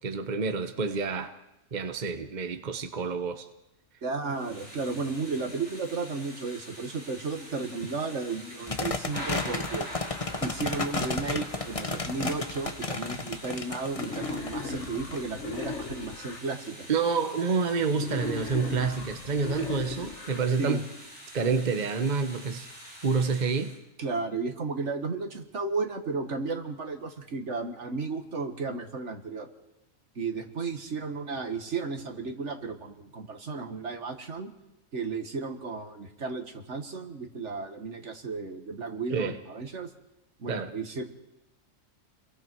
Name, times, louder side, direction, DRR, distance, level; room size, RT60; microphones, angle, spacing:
voice 1, 0.0-1.3 1.7-3.5 16.9-20.9 21.3-22.7 23.0-23.7 39.1-39.4 40.5-40.7, right 5 dB, 40° right, 1.1 m, -28 dB
voice 2, 4.0-9.9 10.4-16.9 20.6-20.8 24.0-29.5 30.2-34.5 34.9-39.9 40.4-41.0, right 4 dB, 70° right, 2.0 m, -34 dB
Thunder / Rain, 4.3-23.8, equal, 20° right, 5.6 m, -45 dB
sound 1, 8.7-15.6, left 3 dB, 30° left, 1.1 m, -33 dB
Wild animals, 13.9-16.4 17.9-20.4, left 4 dB, 70° left, 1.7 m, -37 dB
29.0 x 22.0 x 4.7 m
omnidirectional pair, 1.3 m